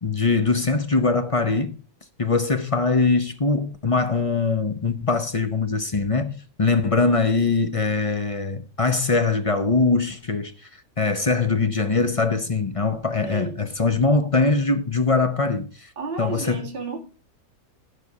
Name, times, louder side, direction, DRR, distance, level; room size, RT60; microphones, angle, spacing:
voice 1, 0.0-1.7 2.2-10.5 11.0-15.9 16.2-16.7, left 4 dB, 35° left, 0.5 m, -22 dB
voice 2, 13.2-13.6 16.0-17.0, right 4 dB, 30° right, 2.1 m, -32 dB
15.5 x 5.2 x 4.8 m
omnidirectional pair, 1.9 m